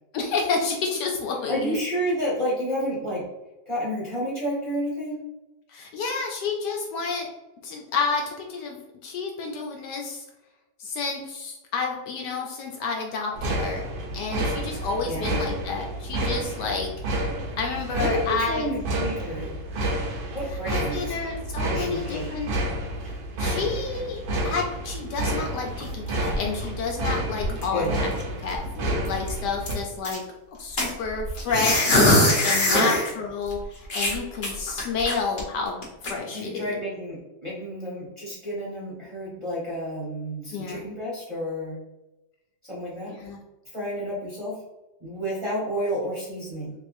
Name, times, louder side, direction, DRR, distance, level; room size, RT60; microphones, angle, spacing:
voice 1, 0.1-1.8 5.7-7.3 7.6-10.2 10.8-13.8 14.1-16.9 17.6-18.7 20.7-22.5 23.4-28.1 28.4-30.2 30.6-32.1 32.4-35.8 36.1-36.8 40.5-40.8 43.0-43.4, left 4 dB, 75° left, 1 dB, 1.1 m, -30 dB
voice 2, 1.5-3.2 3.7-5.2 15.0-15.3 18.0-19.5 20.3-21.2 21.7-22.3 27.7-27.9 32.7-32.9 36.3-41.8 42.6-43.1 43.7-44.5 45.0-46.7, equal, 20° right, -8 dB, 0.9 m, -30 dB
sound 1, 13.3-29.7, right 1 dB, 75° right, 1.3 m, -30 dB
sound 2, 25.7-27.1 27.4-27.9 28.2-28.3 28.5-28.7 29.0-30.2 30.8-33.1 33.5-33.6 33.9-35.4 35.8-36.1, left 1 dB, 45° left, 0.7 m, -22 dB
3.6 x 3.2 x 2.5 m, 1.0 s
omnidirectional pair, 2.0 m